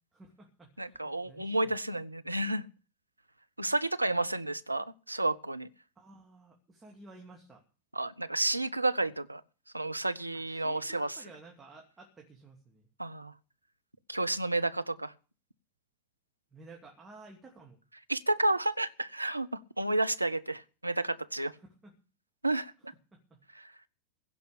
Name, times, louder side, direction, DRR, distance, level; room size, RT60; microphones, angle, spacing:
voice 1, 0.1-1.8 6.0-7.6 10.3-12.9 16.5-17.8 21.6-21.9 23.1-23.4, right 3 dB, 15° right, 2.5 m, -53 dB
voice 2, 0.8-2.6 3.6-5.7 7.9-9.4 9.7-11.2 13.0-13.3 14.1-15.1 18.1-21.5 22.4-22.9, right 2 dB, 85° right, 0.7 m, -31 dB
16.0 x 5.5 x 9.9 m
figure-of-eight pair, 90°, 0 cm